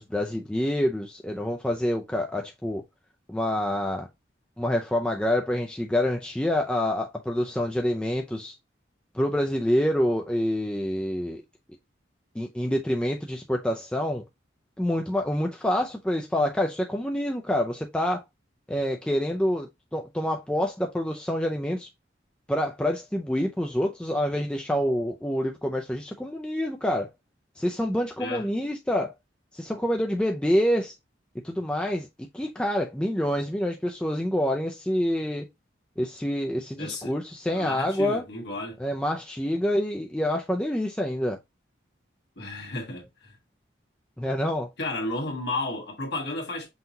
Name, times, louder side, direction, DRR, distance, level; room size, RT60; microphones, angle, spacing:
voice 1, 0.0-2.8 3.3-4.1 4.6-8.5 9.1-11.4 12.4-14.2 14.8-18.2 18.7-21.9 22.5-27.1 27.6-29.1 29.5-30.9 31.4-32.1 32.3-35.4 36.0-38.2 38.8-41.4 44.2-44.7, left 1 dB, 5° left, 0.4 m, -27 dB
voice 2, 36.8-37.1 37.5-38.8 42.4-43.4 44.8-46.7, left 2 dB, 60° left, 1.6 m, -33 dB
5.7 x 2.8 x 2.7 m
head